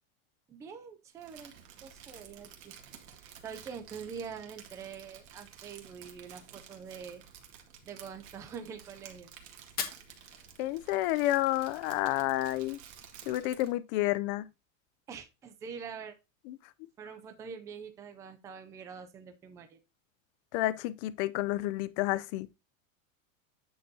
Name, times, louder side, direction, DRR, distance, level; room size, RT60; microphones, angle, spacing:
voice 1, 0.5-1.5 1.8-2.7 3.2-7.2 7.9-9.3 15.1-16.1 17.0-19.8, right 6 dB, 10° right, 0.4 m, -45 dB
Crumpling crinkling, 1.2-13.8, right 8 dB, 55° right, 1.9 m, -53 dB
Fire, 9.6-11.6, left 7 dB, 20° left, 1.1 m, -42 dB
voice 2, 10.6-12.8 13.3-14.5 16.5-16.6 20.5-22.5, left 16 dB, 40° left, 0.6 m, -30 dB
9.5 x 6.6 x 2.8 m
supercardioid pair, 160°, 41 cm